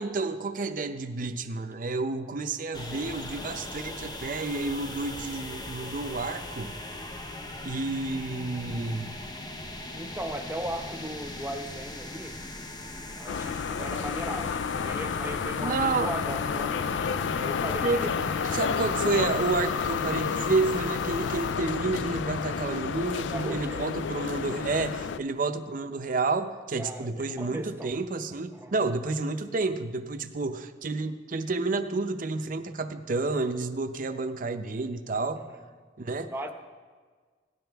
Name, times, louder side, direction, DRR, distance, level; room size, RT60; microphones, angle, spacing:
voice 1, 0.0-6.8 7.6-9.2 15.6-16.1 17.0-17.2 17.8-18.1 18.4-35.4 36.0-36.3, right 3 dB, 50° right, 7 dB, 0.6 m, -30 dB
sound 1, 2.7-21.5, left 1 dB, 25° left, 0.8 m, -40 dB
voice 2, 9.9-12.4 13.2-17.0 17.3-18.4 23.3-23.9 26.8-28.0 28.5-28.7 35.4-35.6 36.3-36.5, right 1 dB, 15° right, 4 dB, 0.8 m, -38 dB
sound 2, 13.3-25.2, left 6 dB, 90° left, 0.4 m, -30 dB
17.5 x 10.5 x 3.5 m, 1.5 s
head